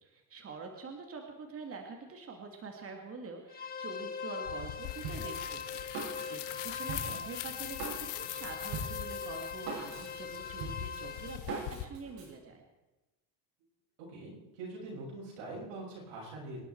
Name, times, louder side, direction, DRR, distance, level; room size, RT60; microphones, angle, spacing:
voice 1, 0.0-12.6, right 4 dB, 35° right, 3 dB, 2.3 m, -46 dB
sound 1, 3.5-11.4, left 6 dB, 20° left, 2.0 m, -41 dB
sound 2, 4.4-11.8, left 15 dB, 85° left, 1.2 m, -43 dB
Drum kit, 5.0-12.3, right 3 dB, 60° right, 7.0 m, -42 dB
voice 2, 14.1-16.6, right 2 dB, 80° right, -3 dB, 7.3 m, -43 dB
25.5 x 11.0 x 4.6 m, 1.1 s
cardioid pair, 110°, 42 cm